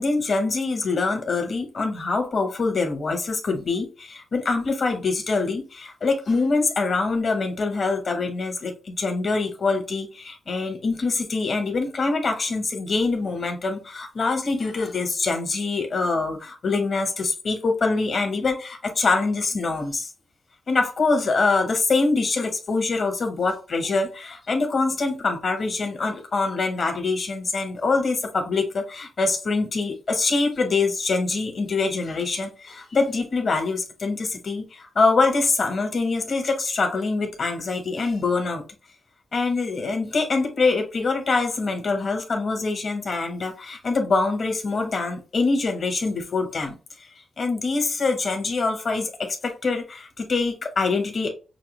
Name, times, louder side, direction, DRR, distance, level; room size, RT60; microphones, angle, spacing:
voice 1, 0.0-20.1 20.7-38.6 39.3-47.1 47.4-51.3, left 3 dB, 50° left, 1.3 m, -24 dB
6.0 x 2.0 x 3.1 m
wide cardioid pair, 125°, 0 cm